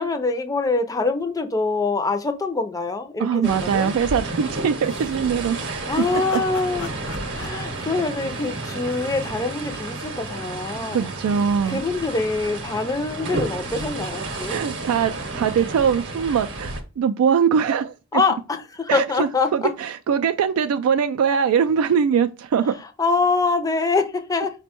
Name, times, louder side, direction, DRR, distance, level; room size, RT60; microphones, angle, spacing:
voice 1, 0.0-3.9 5.9-6.9 7.3-11.1 11.7-14.6 18.1-19.5 23.0-24.5, left 3 dB, 15° left, 0.5 m, -24 dB
voice 2, 3.2-6.0 7.4-7.7 10.9-11.8 14.5-18.2 18.9-22.7, right 7 dB, 75° right, 0.3 m, -22 dB
sound 1, 3.4-16.8, right 2 dB, 55° right, 0.8 m, -31 dB
sound 2, 4.8-9.0, left 5 dB, 80° left, 0.6 m, -42 dB
5.2 x 2.2 x 4.3 m
head